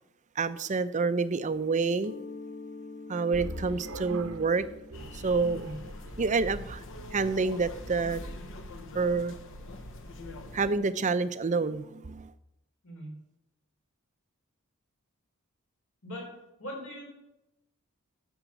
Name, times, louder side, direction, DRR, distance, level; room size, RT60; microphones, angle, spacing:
voice 1, 0.4-2.1 3.1-4.6 5.1-5.7 6.2-6.8 7.1-8.2 8.9-9.3 10.5-12.3, right 4 dB, 35° right, 13 dB, 0.5 m, -28 dB
Mallet percussion, 2.0-7.6, left 3 dB, 45° left, 0.5 m, -47 dB
sound 1, 3.3-8.8, right 1 dB, 70° right, 1.0 m, -44 dB
sound 2, 4.9-10.8, left 1 dB, 60° left, 0.9 m, -43 dB
voice 2, 12.8-13.2 16.0-16.3 16.6-17.1, equal, 80° left, -2 dB, 5.0 m, -40 dB
12.0 x 7.2 x 6.0 m, 0.90 s
head